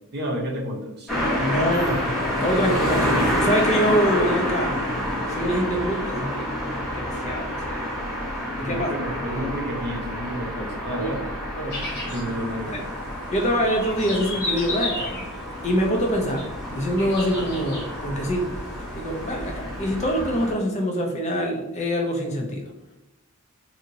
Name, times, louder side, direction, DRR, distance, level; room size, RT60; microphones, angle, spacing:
voice 1, 0.1-1.1 8.4-11.3 12.1-12.8, equal, 50° right, -1 dB, 0.7 m, -31 dB
sound 1, 1.1-20.5, equal, ahead, 1.2 m, -28 dB
voice 2, 1.4-4.8 5.3-6.5 7.0-7.9 8.6-8.9 9.3-9.5 10.6-10.7 10.9-11.2 11.6-12.2 12.7-12.8 13.3-15.3 15.6-16.4 16.7-18.5 18.9-22.7, equal, 30° left, 1 dB, 0.6 m, -25 dB
sound 2, 11.7-19.6, left 2 dB, 50° left, 1.0 m, -36 dB
2.8 x 2.7 x 2.7 m, 0.97 s
head